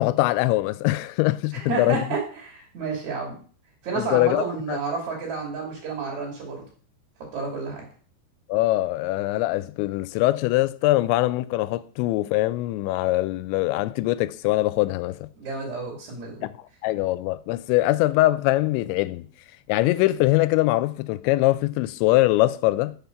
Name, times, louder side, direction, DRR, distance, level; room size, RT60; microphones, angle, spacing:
voice 1, 0.0-2.1 4.0-4.4 4.7-4.8 8.5-15.3 16.4-16.5 16.8-19.3 19.7-23.0, left 17 dB, 85° left, 2.9 m, -22 dB
voice 2, 1.5-3.4 3.8-6.6 7.3-7.8 15.4-16.4, right 4 dB, 45° right, 3.4 m, -30 dB
6.7 x 5.8 x 6.7 m
omnidirectional pair, 5.1 m